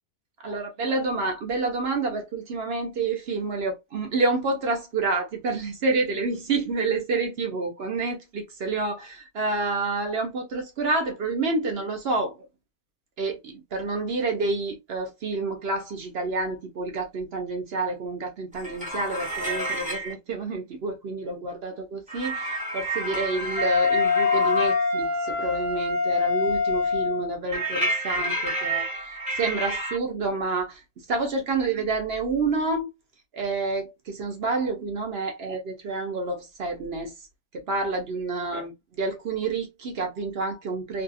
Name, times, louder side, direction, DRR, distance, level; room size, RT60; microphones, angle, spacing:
voice 1, 0.4-12.4 13.2-30.8 31.1-32.9 33.3-37.1 37.5-38.7 39.0-41.0, right 3 dB, 60° right, 0.6 m, -28 dB
sound 1, 18.5-20.1 22.1-24.9 27.5-30.0, right 1 dB, 10° right, 0.5 m, -30 dB
Wind instrument woodwind instrument, 23.6-27.3, left 5 dB, 60° left, 1.1 m, -24 dB
2.7 x 2.3 x 2.6 m
omnidirectional pair, 1.7 m